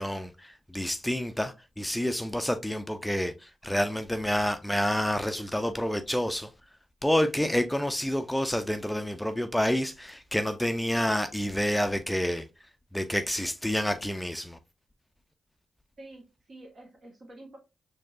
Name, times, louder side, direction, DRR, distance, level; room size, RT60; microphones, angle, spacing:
voice 1, 0.0-6.5 7.0-12.4 12.9-14.6, equal, 5° left, 0.5 m, -28 dB
voice 2, 16.0-17.6, right 1 dB, 55° right, 1.5 m, -48 dB
4.4 x 2.7 x 2.5 m
hypercardioid pair, 40°, 0 cm